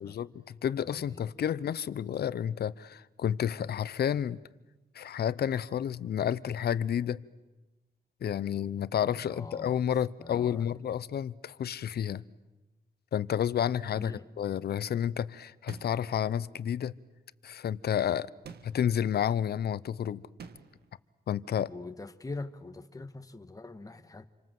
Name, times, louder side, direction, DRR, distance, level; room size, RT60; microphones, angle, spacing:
voice 1, 0.0-4.4 4.9-7.2 8.2-12.2 13.1-16.9 17.4-18.3 18.6-20.2 21.3-21.7, left 9 dB, 75° left, 18 dB, 0.8 m, -30 dB
voice 2, 0.9-1.3 9.0-9.8 10.2-10.8 13.9-14.3 21.7-24.3, left 3 dB, 20° left, 8 dB, 1.6 m, -43 dB
sound 1, 15.7-16.2 18.4-19.0 20.4-20.9, right 6 dB, 75° right, 1.9 m, -48 dB
29.0 x 24.5 x 7.8 m, 1.1 s
cardioid pair, 90°, 17 cm